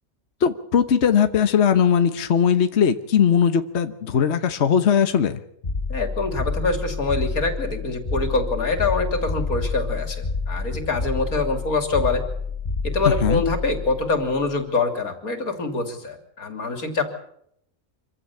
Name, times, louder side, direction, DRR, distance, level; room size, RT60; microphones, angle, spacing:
voice 1, 0.4-5.4 13.0-13.4, left 7 dB, 55° left, 9 dB, 1.3 m, -19 dB
sound 1, 5.6-14.7, left 4 dB, 35° left, 1.4 m, -29 dB
voice 2, 5.9-12.2 12.8-17.0, left 3 dB, 90° left, 6 dB, 3.6 m, -25 dB
26.0 x 15.5 x 8.4 m, 0.72 s
omnidirectional pair, 1.5 m